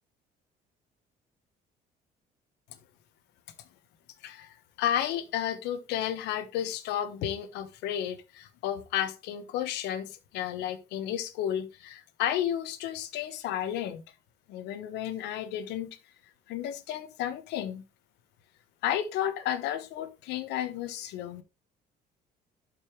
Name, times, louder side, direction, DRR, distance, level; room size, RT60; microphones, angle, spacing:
voice 1, 4.2-14.0 14.5-15.9 16.5-17.8 18.8-21.4, left 10 dB, 90° left, 1.2 m, -32 dB
12.0 x 5.5 x 3.1 m
cardioid pair, 110°, 17 cm